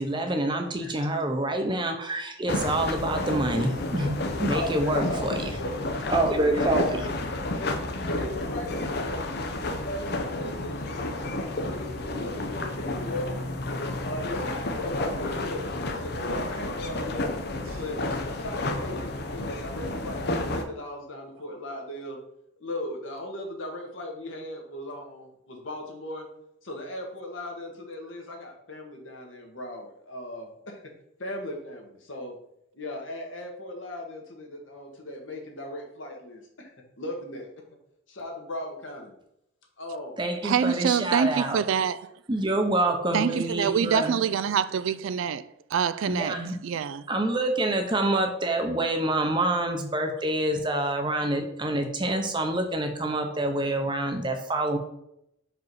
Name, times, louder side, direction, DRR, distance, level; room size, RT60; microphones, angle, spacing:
voice 1, 0.0-5.5 6.1-7.0 40.2-41.6 42.3-44.2 46.0-46.6 47.1-54.8, right 1 dB, 25° right, 0.8 m, -27 dB
sound 1, 2.5-20.6, left 2 dB, 50° left, 0.7 m, -31 dB
voice 2, 4.5-7.0 7.6-7.7 8.0-11.2 11.6-13.5 14.0-17.3 17.7-18.0 18.3-22.2 22.6-26.2 26.6-30.8 31.2-32.4 32.7-36.4 37.0-37.5 38.1-39.1 39.8-40.2, left 1 dB, 70° left, 1.6 m, -37 dB
voice 3, 40.4-42.1 43.1-46.4 46.6-47.0, right 7 dB, 75° right, 0.3 m, -26 dB
5.4 x 4.9 x 4.7 m
head